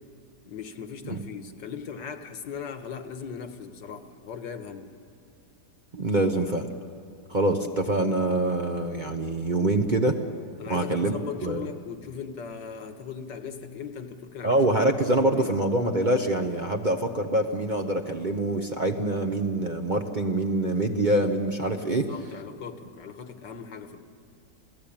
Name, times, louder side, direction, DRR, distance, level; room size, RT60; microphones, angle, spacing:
voice 1, 0.4-5.0 10.6-14.6 15.1-15.5 21.9-24.1, left 6 dB, 75° left, 8 dB, 1.9 m, -39 dB
voice 2, 5.9-6.7 7.3-10.2 10.7-11.1 11.4-11.7 14.4-22.1, right 1 dB, 35° right, 4 dB, 0.9 m, -25 dB
27.5 x 17.5 x 8.8 m, 2.4 s
omnidirectional pair, 1.9 m